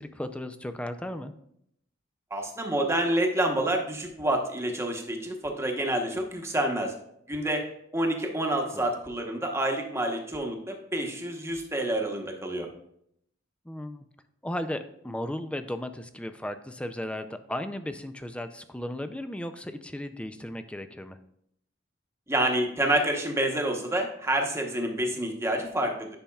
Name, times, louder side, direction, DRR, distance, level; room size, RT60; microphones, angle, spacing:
voice 1, 0.0-1.3 8.7-8.9 13.7-14.0 14.4-21.2, left 1 dB, 5° left, 9 dB, 0.4 m, -35 dB
voice 2, 2.3-6.9 7.3-7.6 7.9-12.7 22.3-26.1, right 1 dB, 15° right, 1 dB, 1.0 m, -28 dB
10.0 x 5.6 x 2.3 m, 0.72 s
head